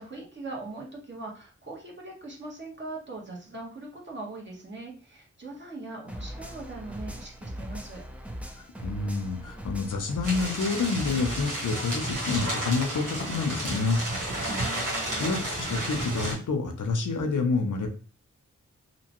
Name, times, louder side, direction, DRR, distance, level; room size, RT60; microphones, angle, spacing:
voice 1, 0.0-8.0 14.6-15.3, right 2 dB, 35° right, -3 dB, 1.2 m, -41 dB
sound 1, 6.1-11.4, equal, 5° right, 0.5 m, -39 dB
voice 2, 8.6-14.0 15.2-17.9, left 4 dB, 80° left, 4 dB, 0.6 m, -28 dB
sound 2, 10.2-16.3, right 1 dB, 85° right, 1.2 m, -32 dB
2.7 x 2.2 x 2.9 m, 0.39 s
cardioid pair, 50°, 31 cm